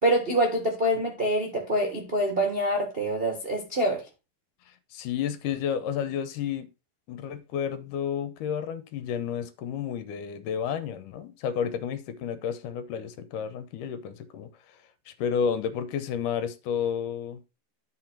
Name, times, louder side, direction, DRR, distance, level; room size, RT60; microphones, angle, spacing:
voice 1, 0.0-4.0, right 1 dB, 50° right, 0.6 m, -25 dB
voice 2, 4.7-6.7 7.1-14.8 15.1-17.4, left 8 dB, 80° left, 2.3 m, -31 dB
12.0 x 4.1 x 4.5 m
omnidirectional pair, 3.8 m